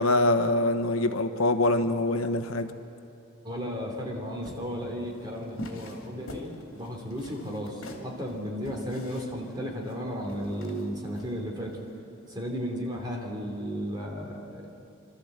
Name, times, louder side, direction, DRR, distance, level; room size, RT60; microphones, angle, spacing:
voice 1, 0.0-2.7, left 2 dB, 85° left, 9 dB, 1.1 m, -24 dB
voice 2, 3.4-11.8 12.3-14.7, equal, 20° right, 0 dB, 3.0 m, -34 dB
sound 1, 4.4-11.9, left 1 dB, 65° left, 2.9 m, -44 dB
26.0 x 13.0 x 8.1 m, 2.7 s
head